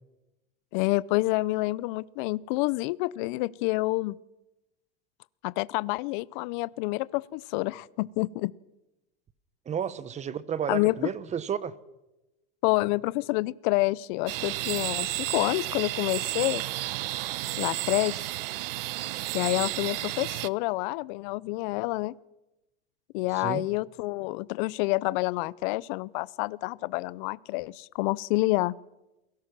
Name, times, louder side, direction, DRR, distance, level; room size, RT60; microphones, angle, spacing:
voice 1, 0.7-4.2 5.4-8.5 10.7-11.0 12.6-16.6 17.6-18.2 19.3-22.1 23.1-28.7, left 21 dB, 55° left, 0.7 m, -28 dB
voice 2, 9.7-11.7 23.3-23.7, right 8 dB, 25° right, 1.1 m, -32 dB
sound 1, 14.3-20.5, right 18 dB, 70° right, 0.8 m, -32 dB
28.0 x 17.0 x 6.1 m
supercardioid pair, 125°, 30 cm